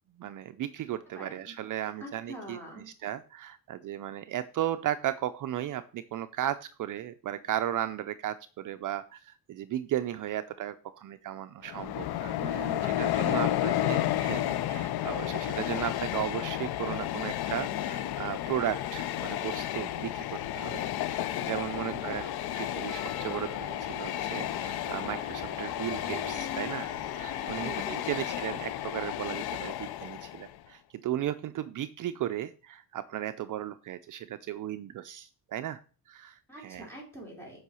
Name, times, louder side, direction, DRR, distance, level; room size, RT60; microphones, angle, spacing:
voice 1, 0.2-2.6 3.0-22.3 22.5-35.8 36.1-36.9, right 12 dB, 55° right, 10 dB, 0.5 m, -35 dB
voice 2, 1.1-1.5 2.0-2.9 12.4-14.0 21.8-22.1 27.5-28.2 36.5-37.6, right 2 dB, 5° left, -3 dB, 4.6 m, -43 dB
Train, 11.6-30.6, left 13 dB, 80° left, 0.7 m, -32 dB
sound 1, 21.2-28.5, left 3 dB, 45° left, 3.6 m, -45 dB
7.9 x 5.6 x 6.9 m, 0.38 s
cardioid pair, 155°, 37 cm